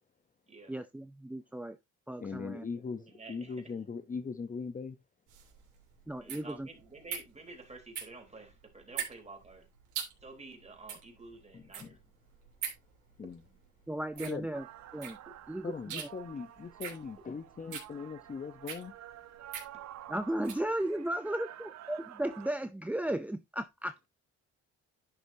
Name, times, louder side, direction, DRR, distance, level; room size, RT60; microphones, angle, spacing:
voice 1, 0.7-1.8 2.1-2.6 6.1-6.7 13.9-14.6 14.9-15.2 15.5-16.1 20.1-24.1, right 1 dB, 5° right, 0.4 m, -35 dB
voice 2, 2.2-5.0 11.5-12.0 13.2-13.4 14.2-14.5 15.6-18.9, left 5 dB, 25° left, 0.8 m, -40 dB
voice 3, 3.0-3.6 6.2-9.7 10.2-12.0 13.2-13.3 15.3-15.4, right 3 dB, 20° right, 3.8 m, -50 dB
sound 1, 5.3-20.7, right 8 dB, 85° right, 3.2 m, -44 dB
sound 2, 14.5-22.5, right 12 dB, 60° right, 0.8 m, -50 dB
11.0 x 6.3 x 2.7 m
cardioid pair, 90°, 30 cm